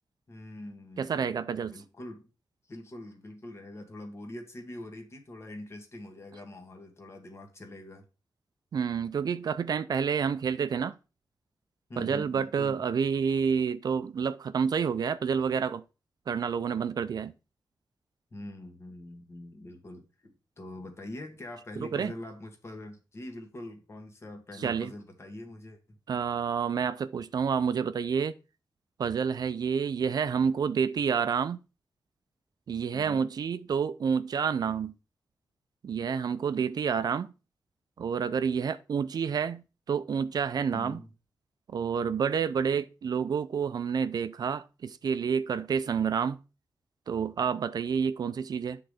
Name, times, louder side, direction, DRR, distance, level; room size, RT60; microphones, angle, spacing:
voice 1, 0.3-2.3 2.7-8.0 11.9-12.9 18.3-26.0 32.9-33.3 40.7-41.1, left 1 dB, 40° left, 1.4 m, -44 dB
voice 2, 1.0-1.7 8.7-11.0 12.0-15.8 16.3-17.3 21.8-22.1 24.6-24.9 26.1-28.3 29.0-31.6 32.7-34.9 35.8-37.3 38.0-41.0 41.7-46.4 47.1-48.8, right 6 dB, 70° right, 0.4 m, -29 dB
7.8 x 3.9 x 4.9 m
wide cardioid pair, 110°, 7 cm